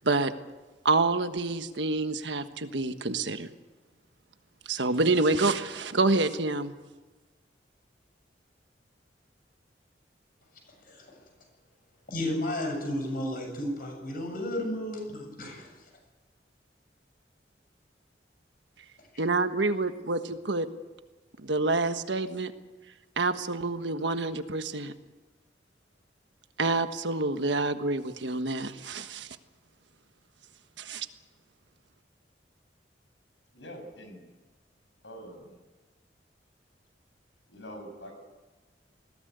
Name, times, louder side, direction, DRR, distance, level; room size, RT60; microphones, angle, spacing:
voice 1, 0.8-3.5 4.7-6.7 19.2-20.7 21.4-22.5 23.2-24.9 26.6-29.3 30.8-31.1, right 3 dB, 80° right, 9 dB, 1.4 m, -27 dB
voice 2, 12.1-15.7, left 1 dB, 50° left, 2 dB, 7.6 m, -32 dB
voice 3, 33.5-34.2 35.0-35.5 37.5-38.1, equal, 85° left, 6 dB, 6.4 m, -44 dB
21.0 x 17.0 x 9.5 m, 1.2 s
head